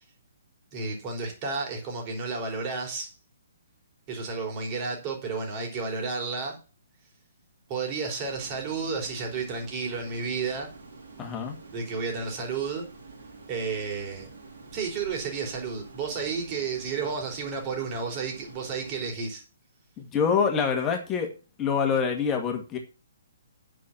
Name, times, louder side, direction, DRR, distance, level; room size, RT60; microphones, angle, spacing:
voice 1, 0.7-3.1 4.1-6.6 7.7-10.7 11.7-12.9 13.5-14.3 14.7-19.4, right 4 dB, 25° right, 1 dB, 3.6 m, -32 dB
sound 1, 8.2-19.1, right 3 dB, 50° right, 4.0 m, -47 dB
voice 2, 11.2-11.6 20.0-21.3 21.6-22.8, left 6 dB, 15° left, 3 dB, 2.0 m, -25 dB
9.5 x 6.4 x 5.9 m, 0.33 s
figure-of-eight pair, 130°, 0 cm